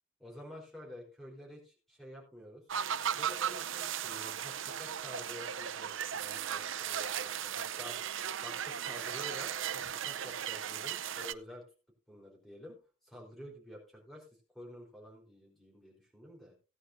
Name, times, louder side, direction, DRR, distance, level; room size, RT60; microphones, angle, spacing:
voice 1, 0.2-2.6 3.2-8.1 8.4-11.6 12.1-14.3 14.5-16.5, left 1 dB, ahead, -2 dB, 4.0 m, -50 dB
sound 1, 2.7-11.3, right 9 dB, 60° right, 0.5 m, -36 dB
17.5 x 9.8 x 2.6 m, 0.32 s
head